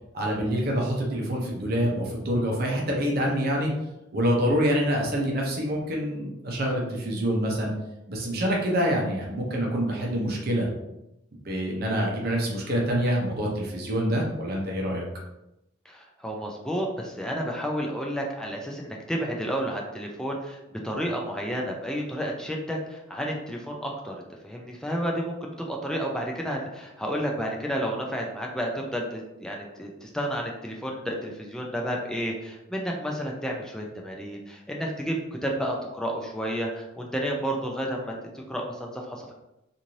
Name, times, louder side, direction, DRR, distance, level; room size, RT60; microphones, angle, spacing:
voice 1, 0.1-3.7 4.1-7.7 8.1-10.7 11.3-15.0, equal, 55° right, -1 dB, 0.7 m, -26 dB
voice 2, 15.9-24.1 24.4-35.2 35.4-39.3, equal, 5° left, -1 dB, 0.4 m, -31 dB
2.6 x 2.6 x 3.0 m, 0.90 s
head